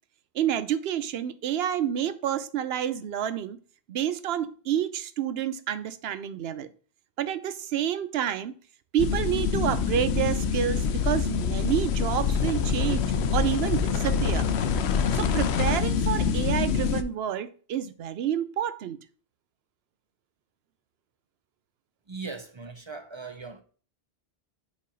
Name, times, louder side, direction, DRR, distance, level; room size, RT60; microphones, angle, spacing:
voice 1, 0.3-3.6 3.9-6.7 7.2-8.5 8.9-14.5 15.1-19.0, right 10 dB, 75° right, 0.8 m, -29 dB
sound 1, 9.0-17.0, left 6 dB, 90° left, 0.8 m, -25 dB
voice 2, 22.1-23.6, right 4 dB, 40° right, 0.4 m, -39 dB
5.2 x 4.4 x 4.9 m
omnidirectional pair, 1.1 m